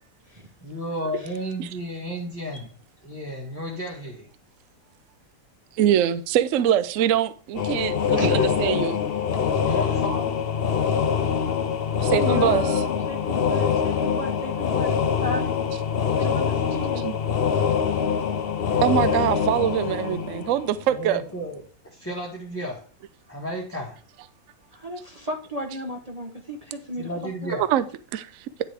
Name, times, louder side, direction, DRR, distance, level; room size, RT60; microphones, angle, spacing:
voice 1, 0.6-2.7 3.0-4.3 9.6-10.4 18.6-18.8 20.9-22.9 23.3-24.0 27.0-27.7, equal, 10° left, 1.3 m, -33 dB
voice 2, 5.8-9.0 12.0-12.6 17.0-17.2 18.8-21.2 27.7-27.8 28.1-28.3, right 10 dB, 65° right, 0.9 m, -23 dB
sound 1, 7.5-21.0, left 7 dB, 50° left, 0.8 m, -24 dB
voice 3, 8.1-8.5 9.6-9.8 12.2-14.9 15.2-15.6 16.2-17.1 24.7-27.1 27.4-27.5, left 1 dB, 25° right, 0.9 m, -33 dB
10.0 x 6.5 x 3.4 m
omnidirectional pair, 1.7 m